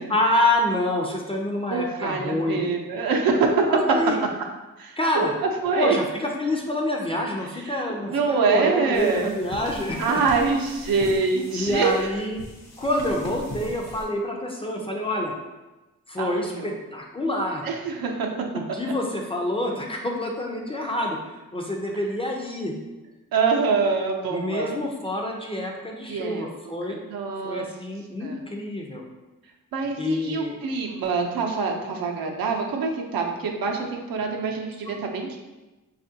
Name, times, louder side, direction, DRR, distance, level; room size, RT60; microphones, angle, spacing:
voice 1, 0.1-2.6 3.7-4.2 5.0-5.4 5.8-10.2 11.5-12.4 12.8-15.4 16.1-17.6 18.5-22.7 24.3-27.0 27.4-29.0 30.0-30.6, left 1 dB, 15° left, 0 dB, 0.4 m, -27 dB
voice 2, 1.7-3.8 4.8-5.3 5.6-6.0 7.7-9.3 10.0-11.9 16.2-16.7 17.6-18.3 18.8-18.9 23.3-24.8 26.1-26.7 27.1-27.7 28.2-28.4 29.7-35.4, right 4 dB, 80° right, 1 dB, 0.6 m, -25 dB
sound 1, 8.9-14.1, left 1 dB, 50° left, 0.8 m, -40 dB
4.2 x 2.4 x 2.7 m, 1.1 s
wide cardioid pair, 115°, 35 cm